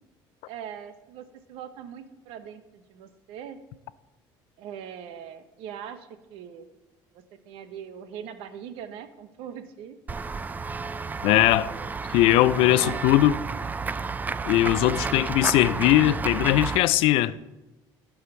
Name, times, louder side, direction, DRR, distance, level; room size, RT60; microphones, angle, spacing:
voice 1, 0.4-3.6 4.6-6.7 7.1-10.0 11.5-11.9 12.7-13.0 17.3-17.4, right 8 dB, 80° right, 1.0 m, -41 dB
Run / Walk footsteps / Bell, 10.1-16.8, right 4 dB, 20° right, 0.4 m, -31 dB
voice 2, 11.2-11.7 12.1-13.3 14.4-17.4, left 15 dB, 80° left, 0.4 m, -20 dB
14.0 x 4.8 x 6.9 m
cardioid pair, 120°, 9 cm